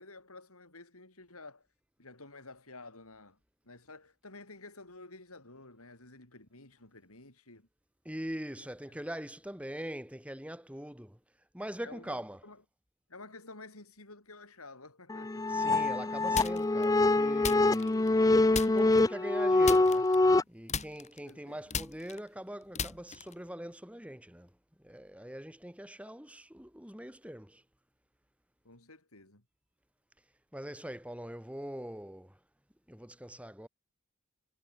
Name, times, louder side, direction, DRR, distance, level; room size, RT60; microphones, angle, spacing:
voice 1, 0.0-1.7 2.0-3.4 3.6-7.7 8.9-9.0 11.8-12.6 13.1-15.5 21.3-21.6 28.6-29.4, left 3 dB, 85° left, 7.2 m, -51 dB
voice 2, 8.0-11.2 11.5-12.4 15.5-18.2 18.7-20.1 20.5-27.6 30.5-32.4 32.9-33.7, equal, 5° right, 4.2 m, -42 dB
sound 1, 15.1-20.4, left 2 dB, 15° left, 0.4 m, -25 dB
sound 2, 16.3-16.8 17.4-18.2 18.5-19.0 19.6-20.4 20.7-23.5, left 6 dB, 30° left, 4.8 m, -37 dB
head